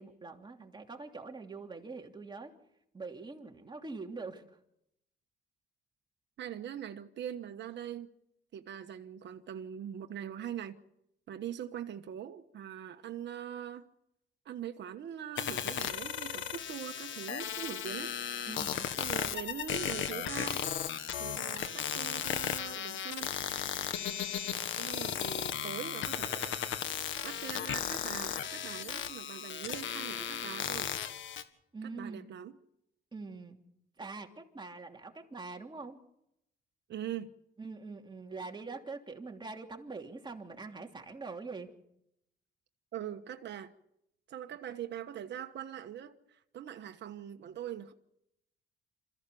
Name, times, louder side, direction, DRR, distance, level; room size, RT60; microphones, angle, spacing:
voice 1, 0.0-2.5 2.9-4.6 18.5-18.9 31.7-32.3 33.1-33.6 34.0-36.0 37.6-41.7, right 3 dB, 25° right, 3.0 m, -44 dB
voice 2, 6.4-8.1 8.5-10.8 11.3-13.9 14.4-18.1 19.0-20.7 21.2-23.3 24.8-26.6 27.2-30.9 32.0-32.5 36.9-37.3 42.9-43.7 44.3-47.9, right 10 dB, 65° right, 1.3 m, -42 dB
sound 1, 15.4-31.4, left 9 dB, 75° left, 1.7 m, -36 dB
27.0 x 15.0 x 7.0 m
cardioid pair, 90°, 20 cm